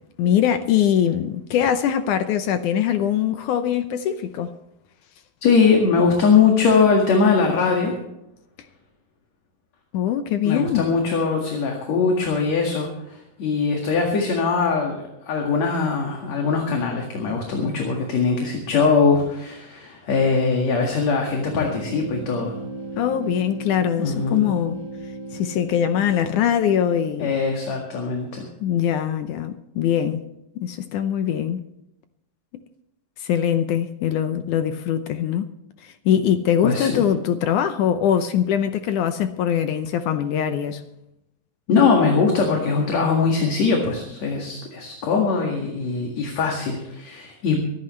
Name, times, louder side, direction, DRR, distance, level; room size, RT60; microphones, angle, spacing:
voice 1, 0.2-4.5 9.9-10.9 23.0-24.8 25.3-27.3 28.6-30.2 30.6-31.6 33.2-35.5 35.8-40.8, left 9 dB, 75° left, 1.9 m, -22 dB
voice 2, 5.4-7.9 10.4-14.9 15.3-22.5 24.0-24.5 27.2-28.5 36.6-37.1 41.7-47.6, left 5 dB, 50° left, 2.9 m, -21 dB
sound 1, 21.2-27.9, right 2 dB, 15° left, 1.2 m, -36 dB
24.0 x 11.5 x 3.2 m
omnidirectional pair, 4.3 m